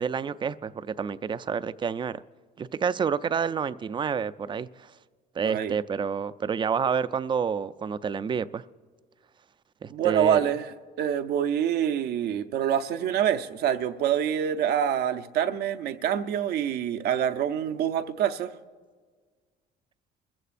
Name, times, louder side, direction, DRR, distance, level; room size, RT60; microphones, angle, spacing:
voice 1, 0.0-2.2 2.6-4.9 5.3-8.6 9.8-10.5, right 6 dB, 30° right, 14 dB, 0.4 m, -29 dB
voice 2, 5.4-5.7 9.9-18.5, right 9 dB, 75° right, 9 dB, 0.7 m, -26 dB
29.0 x 15.0 x 2.5 m, 1.5 s
cardioid pair, 110°, 17 cm